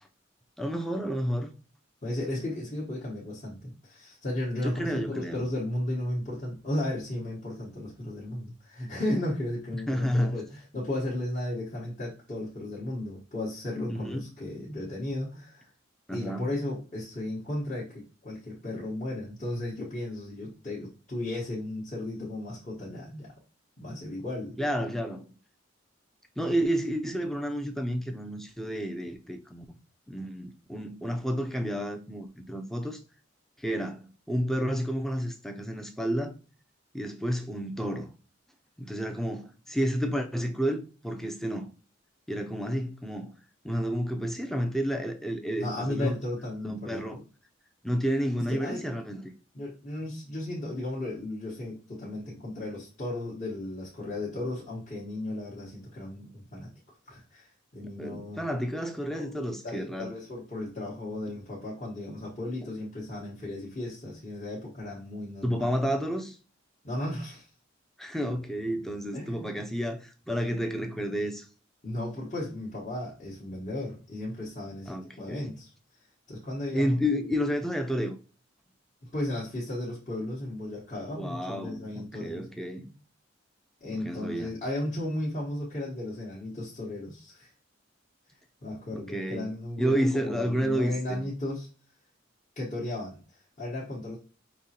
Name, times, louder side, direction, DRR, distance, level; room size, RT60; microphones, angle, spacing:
voice 1, 0.6-1.5 4.6-5.4 9.9-10.4 13.9-14.2 16.1-16.5 24.6-25.3 26.4-29.6 30.1-33.0 33.6-36.3 36.9-38.1 38.8-41.7 42.3-43.3 43.6-46.1 46.6-47.2 47.8-49.3 57.8-60.1 65.4-66.4 68.0-71.5 74.9-75.5 76.7-78.1 81.2-82.9 83.9-84.5 88.9-89.5 89.8-91.2, equal, ahead, 0.5 m, -30 dB
voice 2, 2.0-15.7 16.1-23.3 23.8-24.6 45.6-47.2 48.4-48.9 49.5-56.7 57.1-58.4 59.1-65.8 66.8-67.5 69.1-69.6 71.8-75.7 76.3-76.9 79.0-82.4 83.8-87.5 88.6-91.7 92.6-94.2, left 1 dB, 35° left, 1.1 m, -35 dB
5.3 x 3.0 x 2.8 m
head